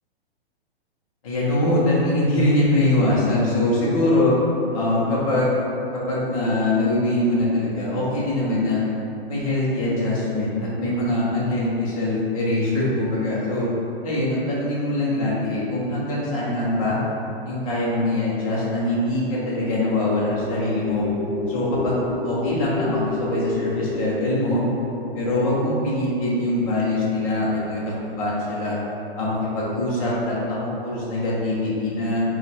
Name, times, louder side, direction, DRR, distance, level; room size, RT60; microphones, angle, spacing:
voice 1, 1.2-4.3 4.7-5.7 6.1-8.8 9.3-13.7 14.0-17.0 17.4-21.0 21.5-24.6 25.1-28.8 29.1-32.2, left 1 dB, 35° left, -7 dB, 0.8 m, -23 dB
sound 1, 18.9-27.1, left 3 dB, 15° left, 1.0 m, -32 dB
5.0 x 2.4 x 3.4 m, 2.8 s
hypercardioid pair, 170°, 32 cm